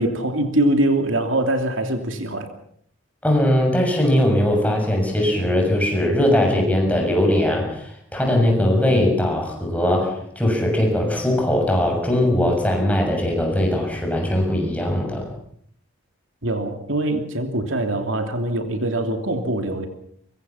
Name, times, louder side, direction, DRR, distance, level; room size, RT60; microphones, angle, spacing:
voice 1, 0.0-2.5 16.4-19.9, right 1 dB, 70° right, 5 dB, 2.9 m, -23 dB
voice 2, 3.2-15.3, left 1 dB, 5° left, 1 dB, 6.9 m, -20 dB
24.0 x 24.0 x 5.8 m, 0.64 s
head